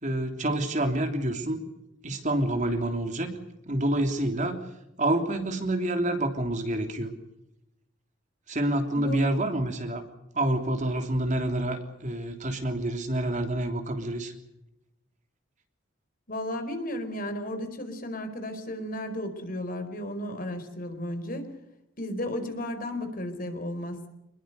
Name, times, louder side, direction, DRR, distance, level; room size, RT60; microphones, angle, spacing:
voice 1, 0.0-1.6 2.0-3.3 3.7-4.6 5.0-7.1 8.5-10.0 10.3-14.3, right 1 dB, 40° right, 5 dB, 3.3 m, -27 dB
voice 2, 8.9-9.3 16.3-21.5 22.0-24.1, left 1 dB, 45° left, 8 dB, 4.6 m, -34 dB
27.0 x 21.5 x 6.8 m, 0.89 s
head